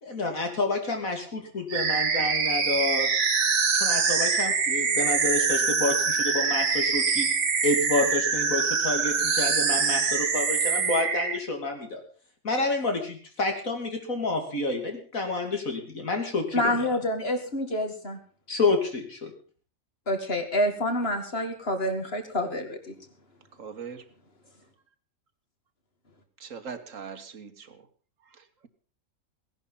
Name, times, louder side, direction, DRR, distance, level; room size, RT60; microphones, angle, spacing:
voice 1, 0.0-1.2 1.5-3.1 3.8-7.3 7.6-12.0 12.4-16.9 18.5-19.3, left 2 dB, 85° left, 3.4 m, -29 dB
sound 1, 1.7-11.4, right 5 dB, 85° right, 1.7 m, -24 dB
voice 2, 16.5-18.2 20.1-22.8, left 1 dB, 45° left, 2.5 m, -27 dB
voice 3, 23.6-24.0 26.4-27.8, right 6 dB, 70° right, 1.7 m, -40 dB
17.0 x 11.0 x 5.6 m
omnidirectional pair, 1.4 m